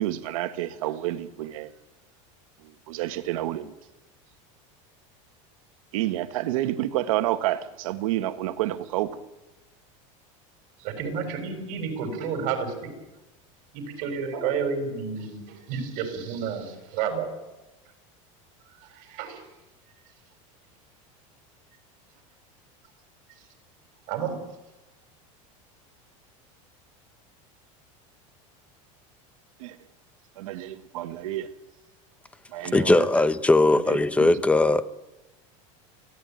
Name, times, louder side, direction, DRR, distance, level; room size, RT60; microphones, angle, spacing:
voice 1, 0.0-1.7 2.6-3.7 5.9-9.2 29.6-29.8 30.4-31.5 32.5-33.1 33.9-34.4, right 14 dB, 85° right, 1.6 m, -29 dB
voice 2, 10.8-12.9 13.7-17.3 18.8-19.4 24.1-24.5, right 6 dB, 55° right, 6.5 m, -31 dB
voice 3, 32.7-35.0, left 2 dB, 5° left, 0.9 m, -20 dB
25.0 x 16.5 x 9.2 m
supercardioid pair, 140°, 17 cm